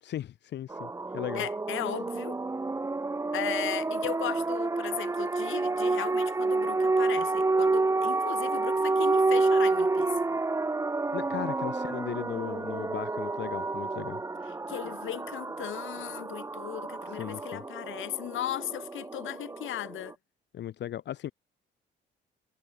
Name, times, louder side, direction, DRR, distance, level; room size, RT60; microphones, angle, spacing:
voice 1, 0.0-1.5 11.1-14.2 17.1-17.6 20.5-21.3, left 11 dB, 65° left, 0.8 m, -37 dB
sound 1, 0.7-20.1, right 3 dB, 15° right, 0.7 m, -29 dB
voice 2, 1.3-2.4 3.3-10.1 14.7-20.1, left 13 dB, 80° left, 3.3 m, -37 dB
cardioid pair, 90°, 20 cm